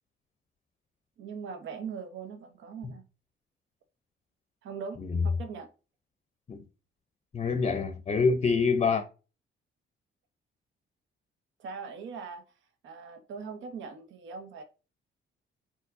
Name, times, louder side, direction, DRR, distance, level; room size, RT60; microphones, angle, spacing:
voice 1, 1.2-3.0 4.6-5.0 5.4-5.7 11.6-12.5 12.8-14.6, right 5 dB, 75° right, 0.8 m, -40 dB
voice 2, 7.3-9.0, left 5 dB, 30° left, 0.6 m, -26 dB
4.5 x 4.2 x 2.6 m
cardioid pair, 90°, 20 cm